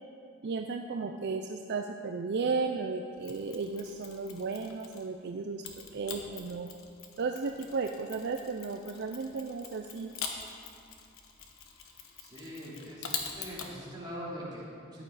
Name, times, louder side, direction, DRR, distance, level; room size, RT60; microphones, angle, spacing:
voice 1, 0.4-5.6 5.9-6.7 7.2-10.1, right 4 dB, 55° right, 4 dB, 0.5 m, -34 dB
Mechanisms, 3.2-5.1 5.6-13.7, left 6 dB, 75° left, 1.2 m, -44 dB
voice 2, 12.2-15.0, equal, 20° right, -8 dB, 3.4 m, -42 dB
14.0 x 9.9 x 4.1 m, 2.4 s
head